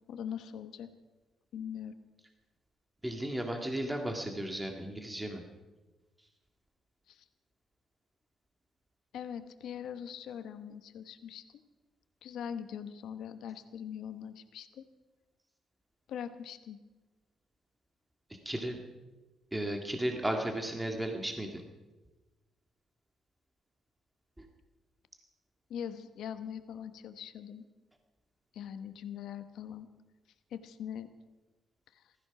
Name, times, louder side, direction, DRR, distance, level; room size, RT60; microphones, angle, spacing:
voice 1, 0.1-0.9 1.5-1.9 7.1-7.2 9.1-11.6 12.2-14.9 16.1-16.8 25.7-27.6 28.5-29.9 30.5-31.1 31.9-32.0, left 8 dB, 75° left, 10 dB, 1.0 m, -42 dB
voice 2, 3.0-5.4 18.5-18.8 19.5-21.6 24.4-24.5, right 1 dB, 10° right, 3 dB, 1.9 m, -34 dB
15.5 x 14.0 x 5.9 m, 1.2 s
cardioid pair, 90°, 0 cm